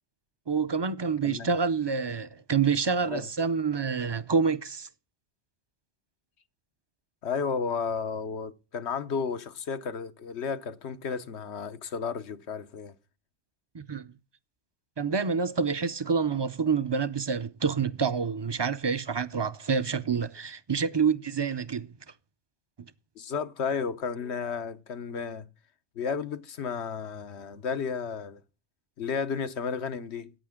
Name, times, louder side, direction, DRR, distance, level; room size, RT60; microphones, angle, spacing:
voice 1, 0.5-4.9 13.7-14.1 15.0-21.9, right 5 dB, 35° right, 0.5 m, -27 dB
voice 2, 7.2-12.9 23.2-25.4 26.0-28.4 29.0-30.3, left 5 dB, 85° left, 1.2 m, -33 dB
14.0 x 9.5 x 3.6 m
omnidirectional pair, 1.1 m